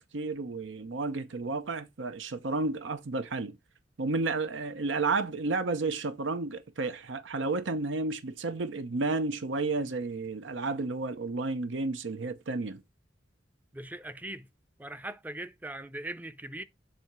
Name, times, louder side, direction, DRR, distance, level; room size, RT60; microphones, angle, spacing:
voice 1, 0.1-3.6 4.0-12.8, right 3 dB, 90° right, 0.7 m, -32 dB
voice 2, 13.7-14.5 14.8-16.6, right 1 dB, 10° right, 0.5 m, -40 dB
7.6 x 2.8 x 5.9 m
head